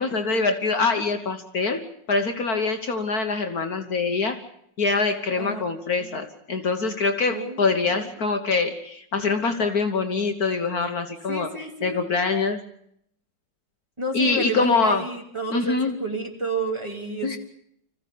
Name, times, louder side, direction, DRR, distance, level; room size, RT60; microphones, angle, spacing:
voice 1, 0.0-4.4 4.8-12.6 14.1-15.0 15.5-15.9 17.2-17.4, left 4 dB, 55° left, 6 dB, 1.7 m, -24 dB
voice 2, 7.3-8.0 11.3-12.1 14.0-17.4, right 3 dB, 15° right, 1 dB, 3.0 m, -31 dB
25.5 x 15.5 x 8.4 m, 0.72 s
omnidirectional pair, 2.0 m